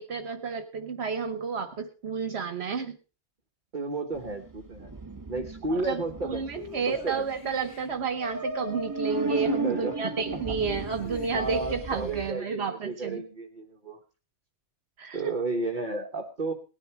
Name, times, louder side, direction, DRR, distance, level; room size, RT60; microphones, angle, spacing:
voice 1, 0.0-3.0 5.8-13.2 15.0-15.3, right 5 dB, 70° right, 9 dB, 1.3 m, -31 dB
voice 2, 3.7-4.9 5.3-6.4 6.9-7.3 9.3-10.2 11.3-14.0 15.1-16.5, right 3 dB, 45° right, 3 dB, 1.4 m, -32 dB
sound 1, 4.1-12.3, right 3 dB, 20° right, 1.1 m, -36 dB
sound 2, 6.6-7.9 10.5-11.7, left 5 dB, 75° left, 1.5 m, -44 dB
18.5 x 10.5 x 4.6 m, 0.34 s
omnidirectional pair, 1.1 m